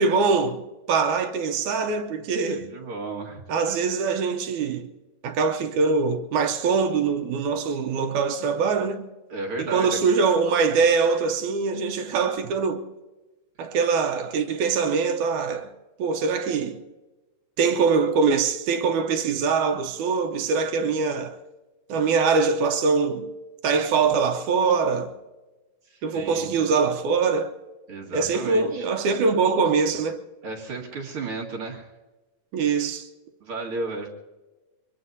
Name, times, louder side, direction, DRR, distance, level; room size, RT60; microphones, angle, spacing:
voice 1, 0.0-2.7 3.5-4.9 5.2-9.1 9.6-12.9 13.6-15.7 16.0-16.8 17.6-21.4 21.9-23.3 23.6-25.1 26.0-27.5 28.1-30.2 32.5-33.1, right 5 dB, 75° right, 2.0 m, -23 dB
voice 2, 2.5-3.4 9.3-10.0 25.9-26.5 27.9-28.9 30.4-31.9 33.4-34.1, right 3 dB, 45° right, 2.4 m, -33 dB
23.5 x 22.5 x 2.7 m
omnidirectional pair, 3.9 m